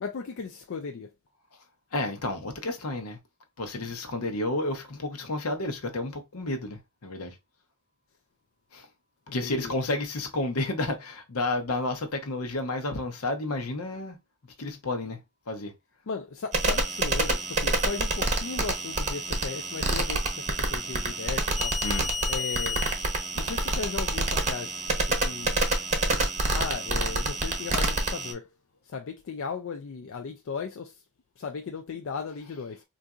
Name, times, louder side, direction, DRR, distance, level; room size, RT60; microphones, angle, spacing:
voice 1, 0.0-1.1 9.3-9.7 16.1-21.8 22.3-22.9 23.3-25.5 26.5-28.5 28.8-31.0 31.4-32.8, left 5 dB, 60° left, 0.4 m, -36 dB
voice 2, 1.9-3.2 3.6-7.4 8.7-8.9 9.3-14.2 14.6-15.2 15.5-15.7 21.8-22.1, left 2 dB, 80° left, 0.9 m, -31 dB
sound 1, 16.5-28.3, right 2 dB, 35° right, 0.8 m, -27 dB
3.9 x 2.6 x 2.3 m
head